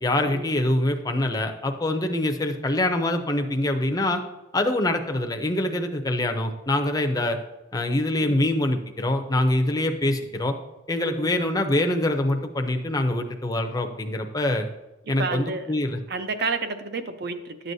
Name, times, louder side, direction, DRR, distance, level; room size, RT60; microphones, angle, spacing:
voice 1, 0.0-4.2 4.5-7.4 7.7-10.6 10.9-14.7 15.1-16.0, left 1 dB, 20° left, 5 dB, 0.6 m, -24 dB
voice 2, 11.0-11.3 15.2-15.7 16.1-17.7, right 4 dB, 50° right, 8 dB, 0.6 m, -30 dB
11.5 x 7.7 x 2.7 m, 1.1 s
head